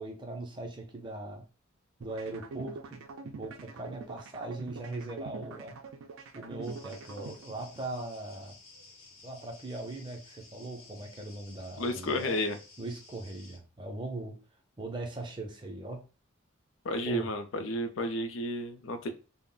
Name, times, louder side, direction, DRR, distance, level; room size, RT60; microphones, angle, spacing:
voice 1, 0.0-1.4 2.0-5.7 6.3-8.5 9.2-12.4 12.8-14.4 14.8-16.0 17.0-17.3, right 2 dB, 20° right, 2 dB, 0.5 m, -40 dB
sound 1, 2.0-8.0, right 4 dB, 85° right, 0.4 m, -45 dB
sound 2, 6.6-13.6, left 3 dB, 85° left, 0.8 m, -55 dB
voice 2, 11.8-12.6 16.8-19.1, left 1 dB, 70° left, 7 dB, 0.5 m, -32 dB
2.4 x 2.0 x 3.7 m, 0.33 s
head